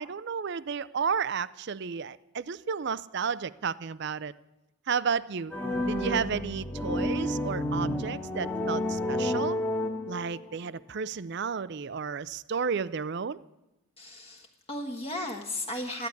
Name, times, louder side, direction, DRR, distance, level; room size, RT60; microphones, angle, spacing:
voice 1, 0.0-4.3 4.9-5.5 5.9-9.6 10.1-13.4, right 6 dB, 50° right, 0.5 m, -32 dB
sound 1, 5.5-10.5, left 1 dB, 10° left, 1.3 m, -30 dB
voice 2, 14.0-16.1, left 1 dB, 25° left, 1.3 m, -35 dB
13.5 x 10.5 x 9.4 m
head